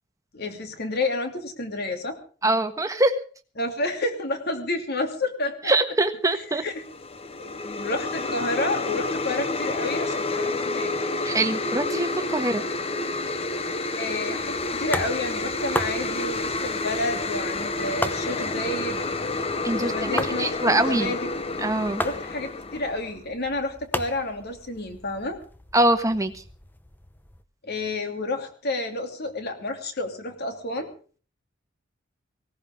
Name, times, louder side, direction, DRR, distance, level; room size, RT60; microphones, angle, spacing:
voice 1, 0.3-2.2 3.6-5.7 6.6-6.8 7.4-10.9 14.0-19.0 19.7-21.3 22.0-25.4 27.6-30.9, left 2 dB, 55° left, 5 dB, 2.9 m, -30 dB
voice 2, 2.4-3.2 5.6-6.6 11.2-12.6 19.6-21.1 21.6-22.0 25.7-26.4, right 2 dB, 15° right, 8 dB, 1.4 m, -23 dB
sound 1, 6.7-23.2, left 3 dB, 30° left, 1.1 m, -29 dB
sound 2, 14.4-27.4, left 1 dB, 10° left, 0.8 m, -36 dB
19.0 x 17.5 x 3.7 m, 0.40 s
head